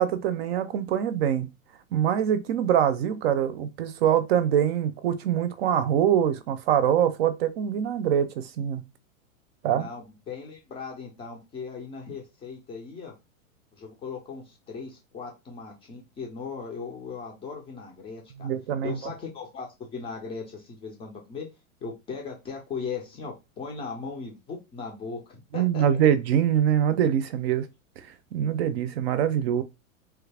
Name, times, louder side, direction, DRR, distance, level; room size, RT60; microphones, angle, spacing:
voice 1, 0.0-1.5 1.9-8.9 9.6-9.9 18.4-19.1 25.5-27.7 28.3-29.6, right 9 dB, 50° right, 0.5 m, -24 dB
voice 2, 9.7-13.2 13.8-18.5 18.8-21.5 21.8-25.9, left 5 dB, 15° left, 0.4 m, -38 dB
3.1 x 2.4 x 3.3 m
supercardioid pair, 145°, 41 cm